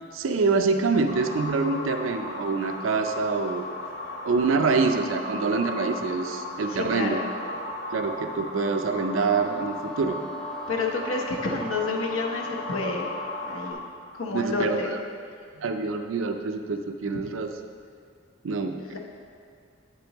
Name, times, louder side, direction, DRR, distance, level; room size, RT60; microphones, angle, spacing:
voice 1, 0.1-3.6 4.2-7.2 7.9-10.2 14.3-14.8 15.6-17.5 18.4-19.0, right 4 dB, 70° right, 6 dB, 0.4 m, -26 dB
sound 1, 1.1-13.7, left 1 dB, 65° left, 1.5 m, -36 dB
voice 2, 6.7-7.3 10.7-13.1 13.5-13.8 14.1-14.9 18.8-19.0, left 3 dB, 85° left, 1 dB, 0.9 m, -29 dB
Wind instrument woodwind instrument, 9.2-13.9, right 2 dB, 5° left, 0.3 m, -41 dB
9.0 x 6.7 x 3.0 m, 2.1 s
head